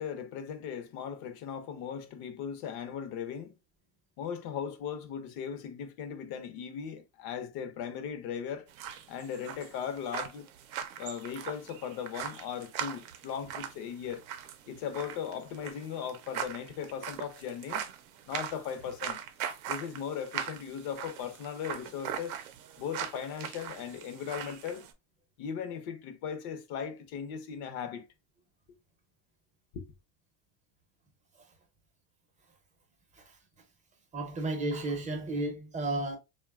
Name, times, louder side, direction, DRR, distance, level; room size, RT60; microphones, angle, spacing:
voice 1, 0.0-3.5 4.2-8.7 9.1-10.5 11.0-14.2 14.7-17.9 18.3-19.2 19.7-22.4 22.8-24.8 25.4-28.1 29.7-29.8, left 8 dB, 60° left, 0.6 m, -38 dB
sound 1, 8.7-24.9, right 9 dB, 85° right, 0.6 m, -41 dB
voice 2, 34.1-36.2, right 2 dB, 20° right, 0.5 m, -33 dB
2.8 x 2.2 x 2.2 m
supercardioid pair, 125°, 42 cm